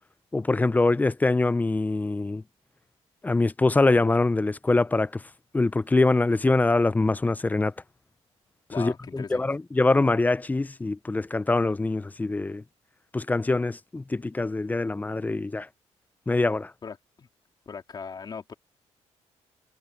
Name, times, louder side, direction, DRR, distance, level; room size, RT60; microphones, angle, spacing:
voice 1, 0.3-2.4 3.2-5.2 5.5-7.7 8.8-12.6 13.1-15.7 16.3-16.7, left 2 dB, 15° left, 0.5 m, -24 dB
voice 2, 8.7-9.4 16.8-17.3 17.6-18.5, left 5 dB, 35° left, 3.2 m, -39 dB
cardioid pair, 115°, 12 cm